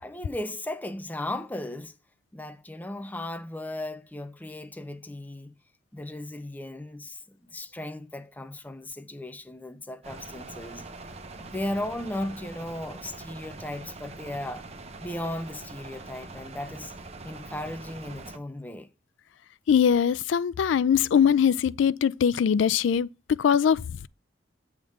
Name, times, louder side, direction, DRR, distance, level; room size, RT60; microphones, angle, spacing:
voice 1, 0.0-2.0 2.3-5.6 5.9-10.8 11.3-14.6 15.0-16.9 17.2-18.9, left 1 dB, 10° left, 0.6 m, -36 dB
sound 1, 10.0-18.4, right 3 dB, 35° right, 0.9 m, -43 dB
voice 2, 19.7-24.1, left 7 dB, 85° left, 0.3 m, -22 dB
7.8 x 3.6 x 6.3 m
head